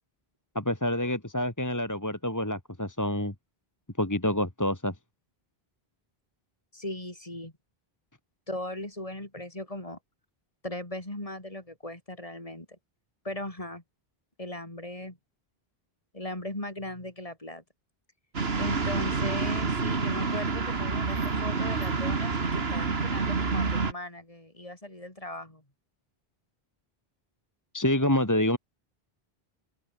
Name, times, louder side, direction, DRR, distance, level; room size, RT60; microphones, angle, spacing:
voice 1, 0.5-3.3 4.0-4.9 27.7-28.6, left 1 dB, 15° left, 2.2 m, -27 dB
voice 2, 6.7-7.5 8.5-10.0 10.6-12.7 13.2-13.8 14.4-15.2 16.1-17.6 18.6-25.6, left 1 dB, 35° left, 4.0 m, -38 dB
sound 1, 18.3-23.9, right 4 dB, 75° right, 2.2 m, -28 dB
open air
omnidirectional pair, 1.1 m